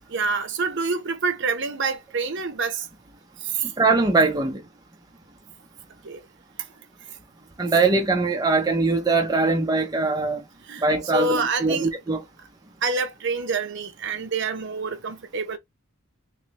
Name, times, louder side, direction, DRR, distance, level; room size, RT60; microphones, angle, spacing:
voice 1, 0.1-2.9 3.4-3.7 6.0-6.2 10.7-10.8 11.1-11.9 12.8-15.6, right 4 dB, 55° right, 0.7 m, -27 dB
voice 2, 3.8-4.6 7.6-10.4 10.8-12.2, right 3 dB, 15° right, 0.5 m, -21 dB
3.1 x 3.1 x 2.9 m
head